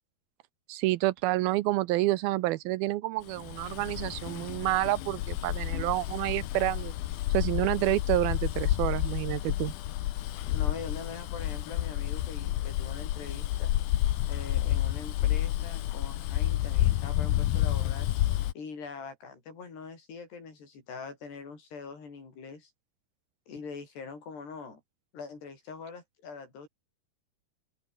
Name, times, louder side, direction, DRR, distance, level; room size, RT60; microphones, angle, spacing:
voice 1, 0.7-6.9 7.3-9.7, right 17 dB, 80° right, 2.4 m, -28 dB
Bus, 3.4-18.5, left 14 dB, 70° left, 2.8 m, -30 dB
voice 2, 10.5-13.7 14.3-18.1 18.6-22.7 23.5-24.8 25.1-26.7, left 5 dB, 90° left, 8.8 m, -43 dB
open air
omnidirectional pair, 4.6 m